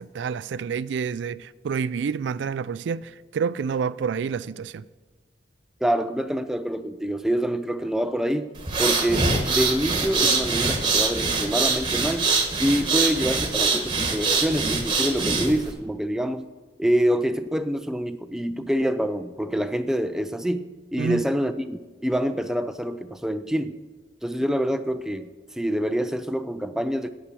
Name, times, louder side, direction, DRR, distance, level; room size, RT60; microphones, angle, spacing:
voice 1, 0.0-4.9 21.0-21.3, right 6 dB, 85° right, 0.3 m, -28 dB
voice 2, 5.8-8.5 8.8-12.3 12.6-16.4 16.8-20.7 20.9-23.8 24.2-25.3 25.6-27.1, equal, 5° right, 0.4 m, -26 dB
sound 1, 8.6-15.7, right 4 dB, 25° right, 1.2 m, -24 dB
8.7 x 8.1 x 6.2 m
head